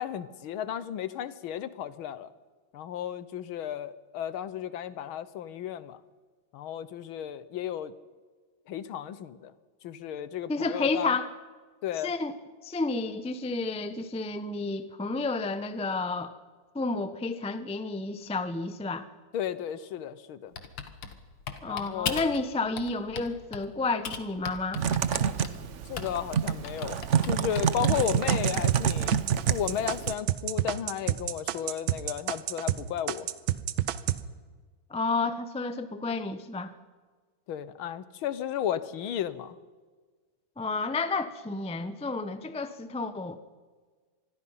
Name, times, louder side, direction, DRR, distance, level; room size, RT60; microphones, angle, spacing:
voice 1, 0.0-2.3 2.7-6.0 6.5-7.9 8.7-9.5 9.8-11.1 11.8-12.1 19.3-20.5 21.7-22.3 25.9-29.2 29.5-33.3 37.5-39.6, left 10 dB, 85° left, 15 dB, 1.8 m, -34 dB
voice 2, 10.5-11.3 12.0-12.3 12.6-16.3 16.7-19.1 21.6-24.8 34.9-36.7 40.6-43.4, left 3 dB, 10° left, 11 dB, 0.3 m, -31 dB
Typing, 20.6-22.4 22.8-23.7 24.0-26.3 26.6-28.1, left 6 dB, 65° left, 2.2 m, -37 dB
Typing 2, 24.8-30.1, right 8 dB, 55° right, 0.8 m, -28 dB
sound 1, 27.9-32.8 33.1-34.2, right 13 dB, 75° right, 1.5 m, -29 dB
26.0 x 21.0 x 5.7 m, 1.4 s
omnidirectional pair, 2.2 m